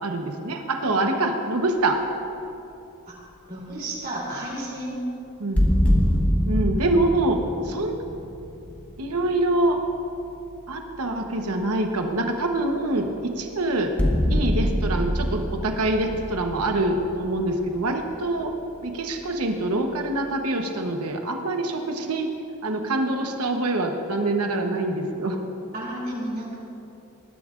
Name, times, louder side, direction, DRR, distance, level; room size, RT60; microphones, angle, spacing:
voice 1, 0.0-2.0 5.4-5.6 6.5-8.0 9.0-9.8 10.7-13.9 14.3-18.5 18.8-22.3 22.6-25.4, right 2 dB, 80° right, 4 dB, 1.0 m, -25 dB
voice 2, 3.5-5.0 25.7-26.5, right 1 dB, 40° right, -5 dB, 3.2 m, -32 dB
sound 1, 5.6-9.3 12.9-13.1 14.0-17.8, equal, 5° left, 1.1 m, -24 dB
19.5 x 11.5 x 2.5 m, 2.8 s
head